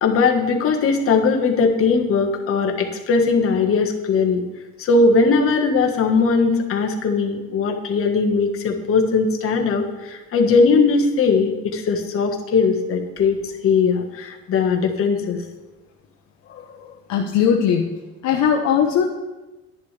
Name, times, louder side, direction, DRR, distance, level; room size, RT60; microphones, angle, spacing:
voice 1, 0.0-4.4 4.8-15.4 16.5-16.9, left 4 dB, 45° left, 2 dB, 1.5 m, -19 dB
voice 2, 17.1-18.0 18.2-19.0, left 8 dB, 65° left, 1 dB, 1.0 m, -19 dB
11.0 x 10.5 x 3.4 m, 1.1 s
cardioid pair, 135°, 30 cm